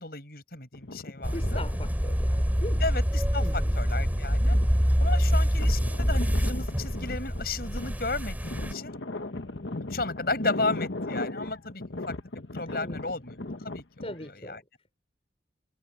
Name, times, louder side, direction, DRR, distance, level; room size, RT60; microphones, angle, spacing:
voice 1, 0.0-1.6 2.8-3.4 3.7-4.6 5.0-9.0 9.9-12.1 12.5-14.6, left 3 dB, 55° left, 7.9 m, -34 dB
sound 1, 0.7-2.9 3.5-14.3, left 2 dB, 80° left, 1.3 m, -38 dB
sound 2, 1.2-8.7, equal, 10° right, 2.8 m, -26 dB
voice 2, 1.3-2.9 3.4-3.8 12.7-13.2 14.0-14.6, left 1 dB, 30° left, 4.8 m, -40 dB
head